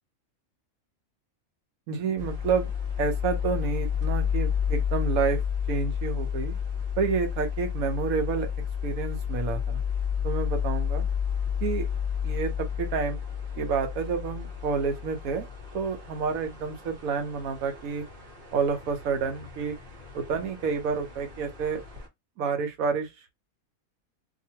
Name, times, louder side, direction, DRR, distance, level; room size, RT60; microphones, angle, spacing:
voice 1, 1.9-2.7 3.0-5.4 5.7-6.6 7.0-8.5 8.8-9.8 10.2-11.1 11.6-11.9 12.2-13.2 13.6-15.5 15.7-18.0 18.5-19.8 20.1-21.8 22.4-23.1, right 5 dB, 80° right, 1.1 m, -29 dB
sound 1, 2.2-22.1, left 8 dB, 45° right, 1.0 m, -31 dB
2.7 x 2.5 x 2.8 m
omnidirectional pair, 1.5 m